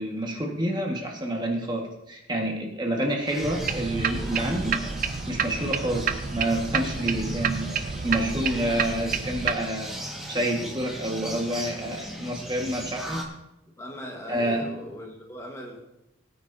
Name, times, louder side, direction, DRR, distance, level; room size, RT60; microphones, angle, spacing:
voice 1, 0.0-4.8 5.3-10.0 10.3-13.2 14.3-14.7, right 1 dB, 25° right, 0 dB, 1.5 m, -28 dB
sound 1, 3.3-13.2, equal, ahead, 1.5 m, -39 dB
sound 2, 3.4-9.5, right 6 dB, 45° right, 0.6 m, -29 dB
voice 2, 13.8-15.8, equal, 15° left, 0 dB, 1.4 m, -39 dB
20.5 x 9.4 x 2.7 m, 0.90 s
head